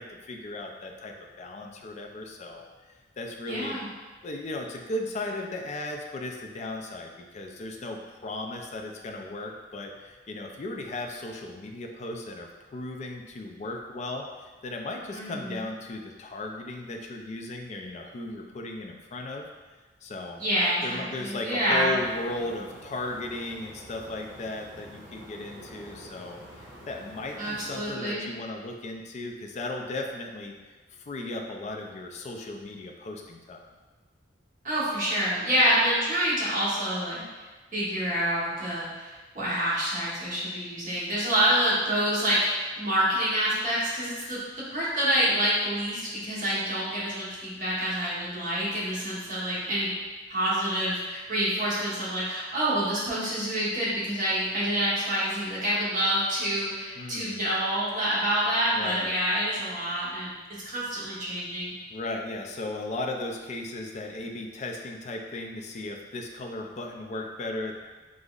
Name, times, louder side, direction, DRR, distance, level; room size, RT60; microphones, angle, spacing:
voice 1, 0.0-3.8 4.2-19.5 20.0-20.4 20.8-30.6 30.9-33.7 57.0-57.4 58.7-59.2 61.9-67.7, left 2 dB, 35° left, 2 dB, 0.3 m, -36 dB
voice 2, 3.5-3.9 15.1-15.6 20.4-22.0 27.4-28.2 34.6-37.2 37.7-44.4 44.7-49.9 50.3-60.3 60.6-61.7, right 1 dB, 45° right, -8 dB, 1.1 m, -27 dB
sound 1, 21.9-27.9, equal, 5° right, 1.0 m, -47 dB
5.1 x 2.0 x 2.3 m, 1.3 s
head